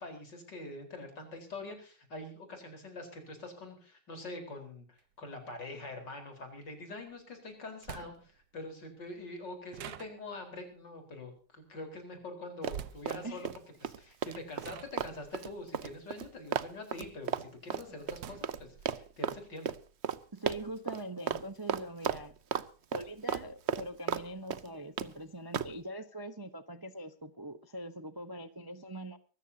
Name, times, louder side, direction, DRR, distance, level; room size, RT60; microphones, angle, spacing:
voice 1, 0.0-13.5 13.8-19.8, left 2 dB, 80° left, 5 dB, 5.0 m, -45 dB
sound 1, 5.0-5.1 7.1-7.2 7.8-8.5 9.7-10.6 12.7-13.2 14.0-14.2 14.6-17.0 17.4-18.9, right 10 dB, 90° right, 1.6 m, -47 dB
Run, 12.6-13.6 13.8-18.6 18.9-19.4 19.7-19.8 20.0-20.2 20.5-21.0 21.3-21.4 21.7-22.6 22.9-24.2 24.5-25.1 25.5-25.7, right 8 dB, 55° right, 0.8 m, -34 dB
voice 2, 20.3-22.3 22.9-29.2, right 1 dB, 20° right, 10 dB, 0.5 m, -43 dB
24.0 x 14.0 x 2.8 m, 0.38 s
omnidirectional pair, 1.9 m